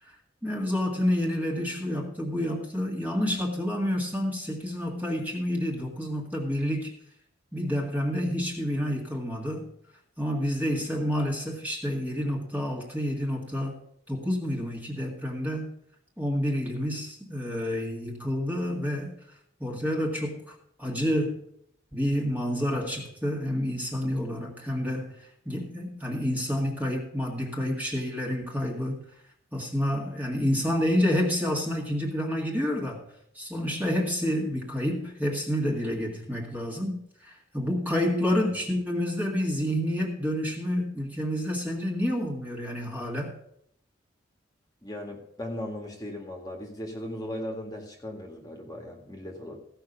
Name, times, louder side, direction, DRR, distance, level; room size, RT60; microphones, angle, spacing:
voice 1, 0.4-6.9 7.5-9.7 10.2-13.8 14.1-15.7 16.2-19.2 19.6-21.4 21.9-29.0 29.5-33.0 33.4-43.3, equal, 10° right, -1 dB, 1.9 m, -29 dB
voice 2, 38.2-38.6 44.8-49.6, left 1 dB, 20° left, 1 dB, 1.8 m, -37 dB
16.0 x 5.7 x 6.7 m, 0.72 s
head